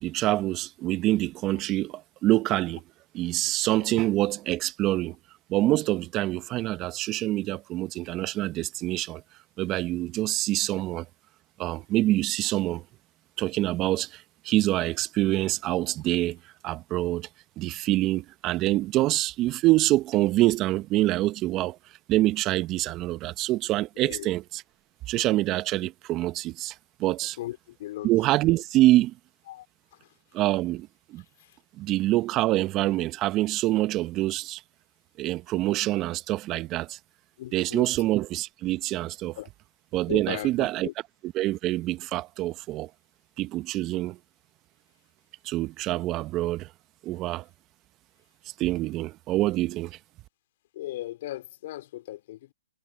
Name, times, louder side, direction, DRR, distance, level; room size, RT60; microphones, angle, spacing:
voice 1, 0.0-2.8 3.1-5.1 5.5-9.2 9.6-11.1 11.6-12.8 13.4-17.3 17.6-21.8 22.1-24.6 25.1-27.4 28.0-29.1 30.3-31.2 31.8-34.6 35.2-37.0 37.5-39.4 39.9-40.9 41.2-42.9 43.4-44.2 45.4-46.7 47.0-47.5 48.6-50.0, right 16 dB, 25° right, 1.0 m, -26 dB
voice 2, 27.4-28.1 29.5-29.7 37.4-37.9 39.4-39.5 40.1-40.9 50.7-52.5, left 15 dB, 45° left, 4.0 m, -37 dB
hypercardioid pair, 140°, 0 cm